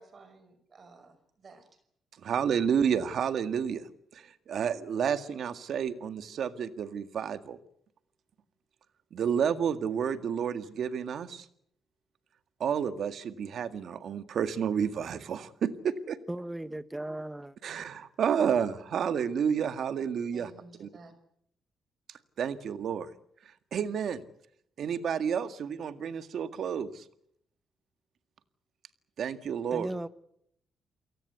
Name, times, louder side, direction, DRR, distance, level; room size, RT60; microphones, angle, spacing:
voice 1, 0.0-1.7 20.3-21.1, right 3 dB, 40° right, 5.6 m, -53 dB
voice 2, 2.2-3.8 4.1-7.6 9.1-11.5 12.6-16.2 17.6-20.5 20.8-20.9 22.4-23.1 23.7-24.2 24.8-27.0 29.2-29.9, right 7 dB, 65° right, 1.9 m, -30 dB
voice 3, 16.3-17.6 29.7-30.1, right 1 dB, 10° right, 1.3 m, -36 dB
29.0 x 18.0 x 8.3 m
cardioid pair, 95°, 0 cm